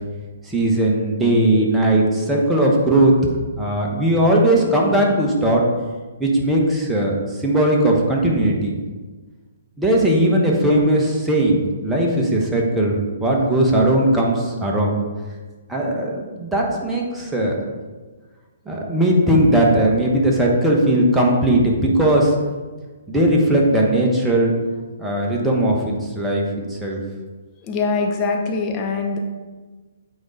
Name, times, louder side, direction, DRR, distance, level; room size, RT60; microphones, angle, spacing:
voice 1, 0.4-3.1 3.6-5.6 6.2-8.7 9.8-14.9 15.7-17.6 18.7-22.3 23.1-24.5 25.0-26.4 26.7-27.0, right 1 dB, 5° right, -2 dB, 1.3 m, -18 dB
voice 2, 27.6-29.2, left 4 dB, 30° left, 2 dB, 0.8 m, -23 dB
8.7 x 3.9 x 4.0 m, 1.3 s
figure-of-eight pair, 130°, 0 cm